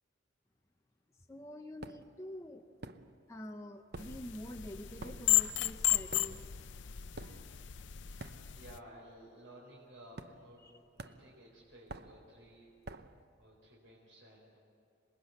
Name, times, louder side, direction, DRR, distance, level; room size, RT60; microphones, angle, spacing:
voice 1, 1.3-2.7 3.3-6.5 7.2-7.4 8.1-8.6 10.6-10.7, left 1 dB, 15° left, 3 dB, 0.7 m, -47 dB
sound 1, 1.8-2.2 2.8-3.5 3.7-8.8 9.1-9.4 10.2-10.7 11.0-13.2, right 3 dB, 55° right, 0.8 m, -50 dB
sound 2, 4.0-8.8, left 13 dB, 65° left, 0.6 m, -34 dB
voice 2, 8.5-10.6 10.9-12.7 13.4-14.6, right 1 dB, 70° right, -4 dB, 4.4 m, -55 dB
27.0 x 20.5 x 8.0 m, 2.6 s
head